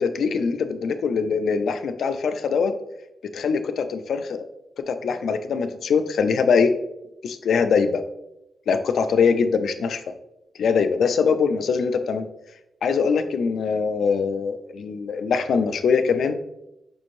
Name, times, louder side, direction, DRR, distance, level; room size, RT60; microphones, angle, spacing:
voice 1, 0.0-2.7 3.3-4.4 4.9-6.7 7.2-8.0 8.7-10.0 10.6-12.3 12.8-16.4, left 5 dB, 80° left, 9 dB, 0.3 m, -22 dB
6.0 x 3.1 x 2.5 m, 0.87 s
cardioid pair, 105°, 0 cm